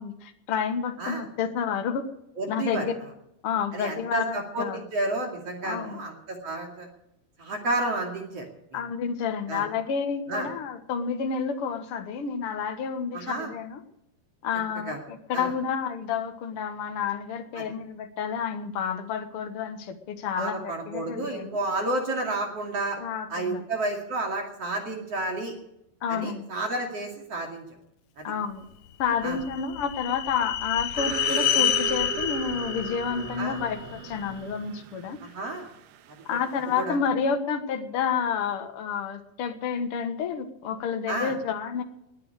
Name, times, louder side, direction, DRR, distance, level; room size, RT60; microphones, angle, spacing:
voice 1, 0.0-2.1 2.5-3.0 3.4-4.9 5.6-6.0 8.7-13.8 14.4-21.6 23.0-23.6 26.0-26.5 28.2-28.6 29.0-35.2 36.2-41.8, left 6 dB, 65° left, 7 dB, 1.4 m, -30 dB
voice 2, 2.4-2.8 3.7-4.7 4.9-6.9 7.4-8.5 8.7-8.8 9.5-9.6 10.3-10.5 13.1-13.5 14.9-15.0 15.3-15.5 17.5-17.6 20.3-23.0 23.3-25.5 26.1-27.6 28.2-28.3 29.2-29.4 33.4-33.6 35.2-35.7 36.8-37.0 41.1-41.3, right 2 dB, 45° right, 2 dB, 3.1 m, -31 dB
sound 1, 29.0-34.2, left 11 dB, 85° left, 1.8 m, -29 dB
sound 2, 31.0-36.8, right 10 dB, 90° right, 3.1 m, -37 dB
20.5 x 9.6 x 6.6 m, 0.85 s
omnidirectional pair, 4.6 m